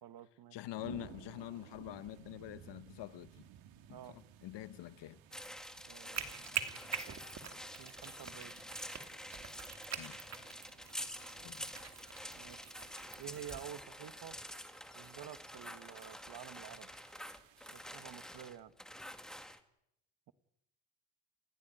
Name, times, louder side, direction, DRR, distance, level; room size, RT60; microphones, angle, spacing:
voice 1, 0.0-0.6 3.9-4.2 5.9-7.1 7.8-8.5 12.3-12.7 13.2-14.4 14.9-16.9 17.7-18.7, right 10 dB, 50° right, 1.8 m, -50 dB
voice 2, 0.5-3.3 3.9-5.2 10.0-10.2 11.4-11.7, left 14 dB, 60° left, 1.2 m, -46 dB
sound 1, 0.8-18.5, right 10 dB, 70° right, 2.8 m, -60 dB
sound 2, 5.3-19.6, equal, ahead, 1.9 m, -48 dB
sound 3, 6.0-13.6, right 7 dB, 35° right, 2.8 m, -45 dB
29.5 x 15.5 x 9.3 m
cardioid pair, 125°, 47 cm